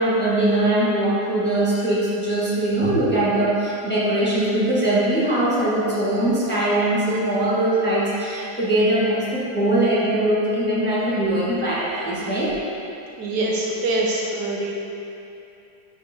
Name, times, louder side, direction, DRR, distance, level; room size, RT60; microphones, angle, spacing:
voice 1, 0.0-12.5, right 1 dB, 5° left, -9 dB, 1.0 m, -21 dB
voice 2, 13.2-14.7, right 2 dB, 70° right, -2 dB, 1.2 m, -24 dB
11.0 x 5.8 x 2.7 m, 2.8 s
omnidirectional pair, 2.0 m